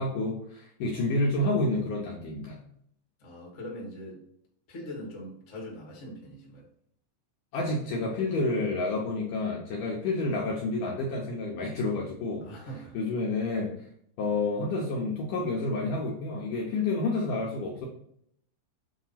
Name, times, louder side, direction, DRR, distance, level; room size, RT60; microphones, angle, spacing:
voice 1, 0.0-2.6 7.5-12.4 12.9-13.7 14.2-17.9, left 2 dB, 75° left, -3 dB, 2.0 m, -29 dB
voice 2, 3.2-4.2 4.7-6.6 12.4-13.0, equal, 50° left, -3 dB, 0.8 m, -41 dB
8.0 x 2.8 x 5.7 m, 0.69 s
omnidirectional pair, 4.9 m